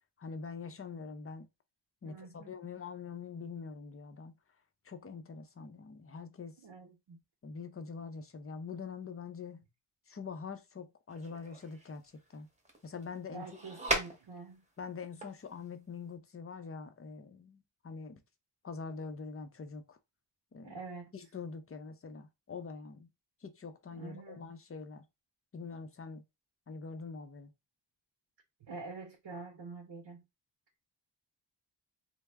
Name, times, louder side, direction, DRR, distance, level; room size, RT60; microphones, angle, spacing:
voice 1, 0.2-1.5 2.0-4.3 4.8-6.6 7.4-9.7 10.1-12.0 12.3-12.5 12.8-13.5 14.8-18.2 18.6-20.0 20.5-20.8 21.1-23.1 23.4-25.0 25.5-26.2 26.7-27.5, left 5 dB, 30° left, 0.5 m, -44 dB
voice 2, 2.0-2.5 6.6-7.2 13.3-14.6 20.6-21.1 23.9-24.5 28.6-30.2, right 4 dB, 65° right, 0.8 m, -46 dB
sound 1, 11.1-14.7 15.1-15.7, right 1 dB, 15° right, 0.9 m, -38 dB
3.3 x 2.0 x 3.4 m
wide cardioid pair, 110°, 44 cm